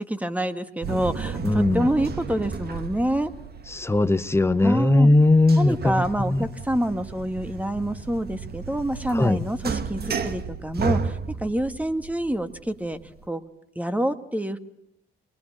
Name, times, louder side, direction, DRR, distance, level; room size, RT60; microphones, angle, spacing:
voice 1, 0.0-3.3 4.6-5.1 5.5-13.0 13.3-13.4 13.8-14.6, right 1 dB, 5° right, 1.6 m, -27 dB
sound 1, 0.8-13.2, right 5 dB, 50° right, 1.5 m, -33 dB
voice 2, 1.4-1.9 3.7-6.4 9.1-9.4, left 2 dB, 10° left, 0.9 m, -19 dB
22.0 x 20.0 x 8.6 m
cardioid pair, 85°, 21 cm